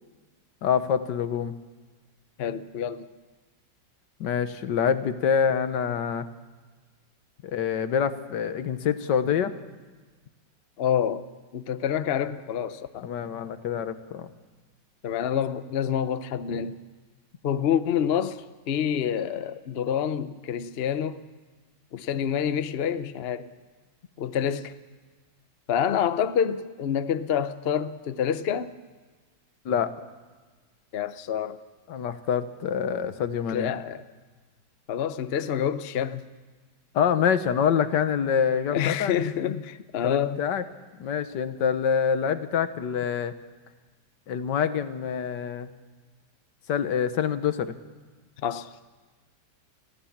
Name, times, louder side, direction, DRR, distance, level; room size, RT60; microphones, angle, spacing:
voice 1, 0.6-1.5 4.2-6.3 7.4-9.5 13.0-14.3 29.6-29.9 31.9-33.7 36.9-39.1 40.0-40.6 41.0-43.3 44.3-45.7 46.7-47.8, left 7 dB, 75° left, 1.6 m, -26 dB
voice 2, 2.4-3.1 10.8-11.2 11.5-13.1 15.0-16.8 17.4-21.2 21.9-23.5 24.2-24.7 25.7-28.7 30.9-31.6 33.5-34.0 34.9-36.3 38.7-40.4 48.4-48.7, left 8 dB, 55° left, 0.7 m, -27 dB
28.5 x 15.5 x 7.3 m
omnidirectional pair, 1.9 m